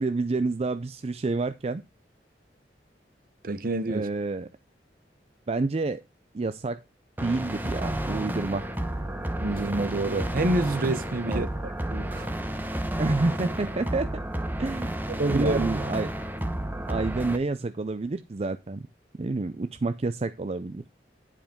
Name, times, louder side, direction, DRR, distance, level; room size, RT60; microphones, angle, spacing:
voice 1, 0.0-1.8 3.9-4.5 5.5-6.0 6.3-6.8 7.2-8.7 11.3-11.4 13.0-14.1 14.6-15.0 15.3-16.2 16.9-18.8 19.2-20.9, right 3 dB, 35° right, 0.4 m, -29 dB
voice 2, 3.4-4.1 9.4-12.3 15.1-15.7, right 2 dB, 55° right, 0.8 m, -28 dB
sound 1, 7.2-17.4, right 1 dB, 10° right, 1.0 m, -31 dB
10.5 x 5.0 x 5.2 m
head